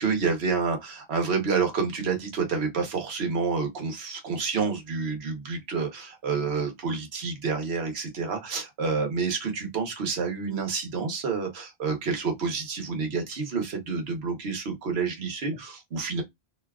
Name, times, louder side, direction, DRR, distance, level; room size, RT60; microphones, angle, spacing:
voice 1, 0.0-16.2, right 5 dB, 75° right, 1.2 m, -29 dB
2.7 x 2.3 x 3.4 m
omnidirectional pair, 1.1 m